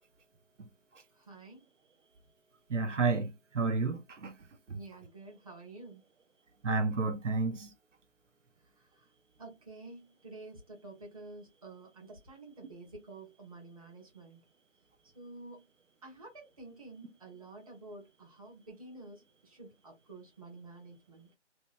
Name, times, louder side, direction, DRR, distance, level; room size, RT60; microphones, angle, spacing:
voice 1, 1.1-1.7 4.7-6.0 8.6-9.1 9.4-14.4 15.1-15.6 16.0-21.3, right 2 dB, 30° right, 0.9 m, -50 dB
voice 2, 2.7-4.3 4.7-4.8 6.6-7.7, right 3 dB, 85° right, 0.7 m, -31 dB
2.8 x 2.2 x 2.5 m
figure-of-eight pair, 165°, 36 cm